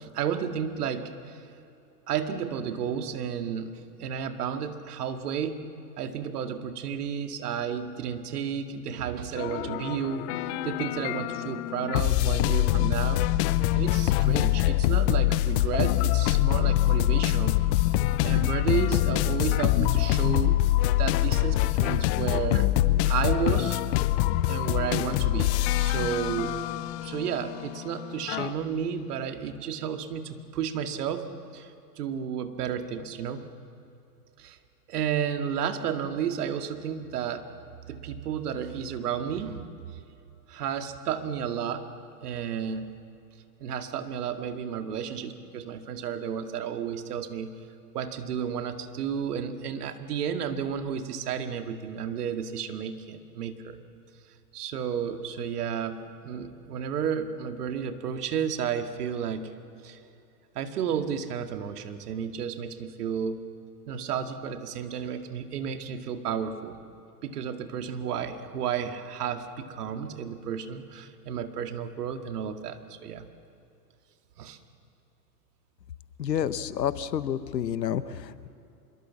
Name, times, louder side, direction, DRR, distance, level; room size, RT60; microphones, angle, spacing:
voice 1, 0.0-1.4 2.1-5.6 6.0-13.3 13.7-17.6 17.9-22.7 23.0-23.8 24.5-25.5 25.8-31.3 31.5-33.5 34.4-34.6 34.9-37.4 37.9-40.0 40.5-41.8 42.2-42.9 43.6-47.5 47.9-53.8 54.5-56.0 56.2-59.5 59.8-60.0 60.6-63.4 63.9-66.8 67.2-73.2 74.4-74.6, right 8 dB, 65° right, 7 dB, 2.1 m, -32 dB
sound 1, 9.4-28.5, left 15 dB, 40° left, 0.9 m, -25 dB
voice 2, 76.2-78.5, left 9 dB, 85° left, 14 dB, 1.2 m, -29 dB
25.5 x 22.5 x 7.4 m, 2.7 s
hypercardioid pair, 115°, 49 cm